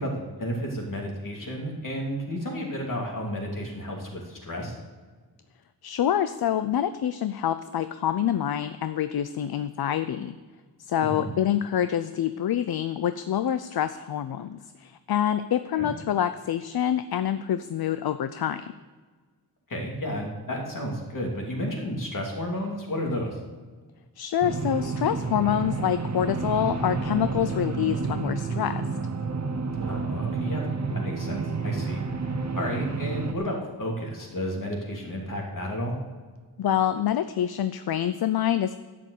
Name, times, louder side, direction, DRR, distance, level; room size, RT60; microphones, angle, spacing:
voice 1, 0.0-4.7 11.0-11.3 15.7-15.9 19.7-23.4 29.8-30.6 30.9-32.0 32.5-36.0, equal, 55° left, -1 dB, 3.0 m, -32 dB
voice 2, 5.8-10.3 10.8-18.7 24.2-28.8 36.6-38.7, left 10 dB, 70° left, 11 dB, 0.6 m, -26 dB
sound 1, 24.4-33.3, right 4 dB, 45° right, 1.1 m, -30 dB
12.0 x 7.7 x 8.2 m, 1.4 s
wide cardioid pair, 115°, 39 cm